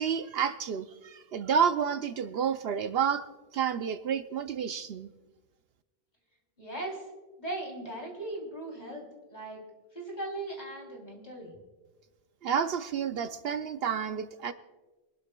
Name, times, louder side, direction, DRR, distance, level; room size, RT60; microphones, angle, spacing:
voice 1, 0.0-3.3 3.5-5.1 12.4-14.5, right 7 dB, 70° right, 10 dB, 0.8 m, -30 dB
voice 2, 6.6-7.0 7.4-9.0 9.3-9.6 9.9-11.5, right 2 dB, 40° left, 0 dB, 3.3 m, -38 dB
24.5 x 12.5 x 2.2 m, 1.2 s
omnidirectional pair, 1.1 m